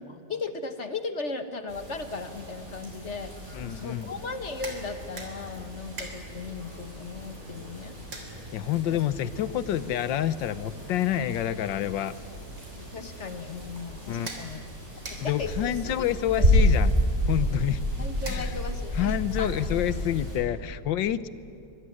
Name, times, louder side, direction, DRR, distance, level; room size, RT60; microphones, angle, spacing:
voice 1, 0.0-8.0 8.9-9.0 12.7-14.6 15.2-16.1 16.4-16.5 18.0-19.5, left 4 dB, 40° left, 8 dB, 1.5 m, -37 dB
sound 1, 1.7-20.4, equal, 40° right, 8.0 m, -31 dB
voice 2, 3.5-4.1 8.5-12.1 14.1-14.3 15.2-16.9 17.3-17.9 18.3-18.5 19.0-21.3, left 11 dB, 90° left, 15 dB, 1.6 m, -28 dB
sound 2, 4.3-18.9, right 2 dB, 85° right, 4.4 m, -48 dB
24.0 x 24.0 x 9.9 m, 2.5 s
omnidirectional pair, 1.9 m